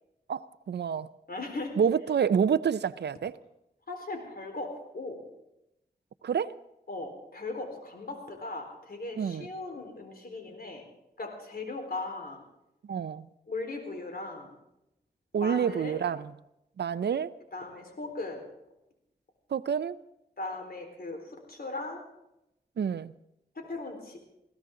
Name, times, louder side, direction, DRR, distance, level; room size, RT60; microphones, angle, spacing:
voice 1, 0.7-1.1 1.8-3.3 6.2-6.6 9.2-9.5 12.9-13.3 15.3-16.2 16.8-17.3 19.5-20.0 22.8-23.1, right 7 dB, 90° right, 16 dB, 0.5 m, -27 dB
voice 2, 1.3-1.8 3.9-5.3 6.9-10.8 11.2-12.4 13.5-14.6 15.4-16.0 17.5-18.4 20.4-22.0 23.5-24.2, left 2 dB, 65° left, 4 dB, 4.1 m, -38 dB
21.0 x 16.0 x 3.8 m, 0.85 s
cardioid pair, 50°, 17 cm